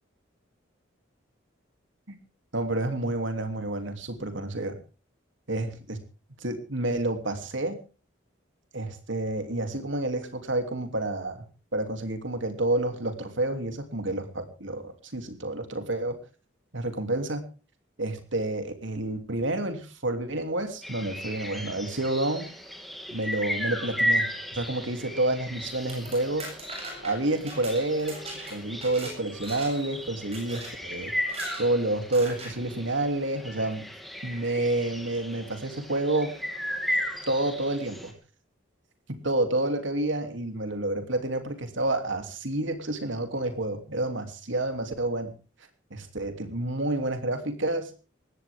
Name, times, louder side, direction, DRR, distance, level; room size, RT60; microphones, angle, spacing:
voice 1, 2.5-4.8 5.5-6.0 6.4-7.7 8.7-11.4 11.7-16.2 16.7-17.5 18.0-22.4 23.1-26.5 27.0-28.2 28.5-31.1 31.6-33.8 34.2-36.3 37.3-38.1 39.1-45.3 45.9-47.9, right 2 dB, 75° right, 7 dB, 3.0 m, -29 dB
sound 1, 20.8-38.1, equal, ahead, 2.7 m, -35 dB
sound 2, 25.7-29.2 29.4-29.9 30.3-30.7 31.2-31.6 32.1-32.5, right 2 dB, 30° right, 7.5 m, -40 dB
20.0 x 15.5 x 3.7 m, 0.35 s
head